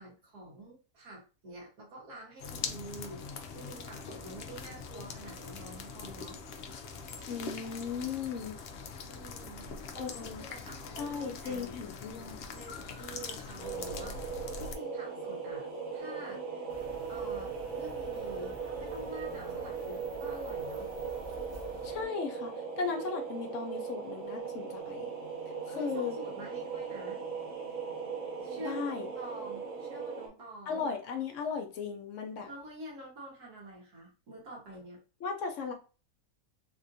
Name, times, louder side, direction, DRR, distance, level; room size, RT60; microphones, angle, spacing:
voice 1, 0.0-6.4 9.1-11.8 12.5-16.7 17.0-20.9 25.7-27.2 28.4-28.8 29.2-30.8 32.5-35.0, right 1 dB, 80° right, -3 dB, 1.7 m, -47 dB
sound 1, 2.4-14.8, left 5 dB, 90° left, 0.5 m, -43 dB
voice 2, 7.3-8.6 9.9-10.4 11.0-12.4 21.8-25.1 25.8-26.2 28.6-29.1 30.7-32.5 35.2-35.7, left 5 dB, 60° left, 4 dB, 0.9 m, -36 dB
sound 2, 13.6-30.3, right 5 dB, 60° right, 1.1 m, -39 dB
sound 3, 16.7-22.0, right 1 dB, 30° right, 0.7 m, -49 dB
3.5 x 2.5 x 2.6 m, 0.34 s
omnidirectional pair, 1.6 m